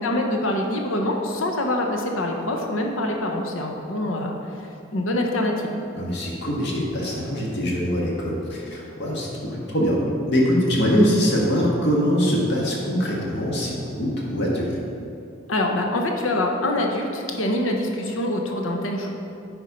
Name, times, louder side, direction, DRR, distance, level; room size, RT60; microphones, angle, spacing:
voice 1, 0.0-5.8 15.5-19.1, left 1 dB, 85° left, 2 dB, 0.9 m, -25 dB
voice 2, 6.0-10.0 10.3-14.8, equal, 60° left, -3 dB, 1.7 m, -23 dB
9.3 x 4.5 x 5.4 m, 2.6 s
head